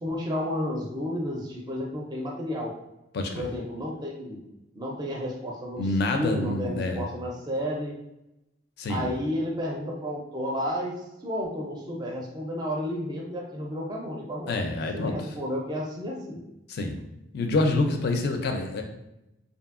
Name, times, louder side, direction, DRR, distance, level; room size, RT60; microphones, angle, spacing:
voice 1, 0.0-2.7 3.3-4.4 4.8-5.9 6.1-8.0 8.9-10.9 11.2-14.6 14.9-16.4, equal, 25° right, -1 dB, 0.4 m, -31 dB
voice 2, 3.1-3.5 5.8-7.0 8.8-9.1 14.5-15.1 16.7-17.0 17.3-18.8, left 2 dB, 60° left, 5 dB, 0.4 m, -27 dB
2.6 x 2.6 x 2.5 m, 0.91 s
head